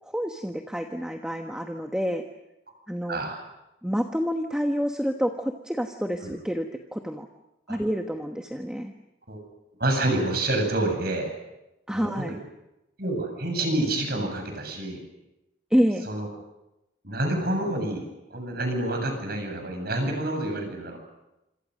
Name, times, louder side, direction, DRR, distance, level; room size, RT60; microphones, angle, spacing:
voice 1, 0.0-2.2 2.9-3.2 3.8-7.3 7.7-8.9 11.9-12.4 15.7-16.1, equal, 5° right, 3 dB, 1.2 m, -28 dB
voice 2, 3.1-3.4 6.2-6.3 7.7-7.8 9.3-9.4 9.8-11.3 11.9-12.4 13.0-15.0 16.1-16.3 17.0-18.0 18.3-21.0, right 1 dB, 50° right, 4 dB, 7.4 m, -28 dB
27.0 x 27.0 x 6.5 m, 0.94 s
head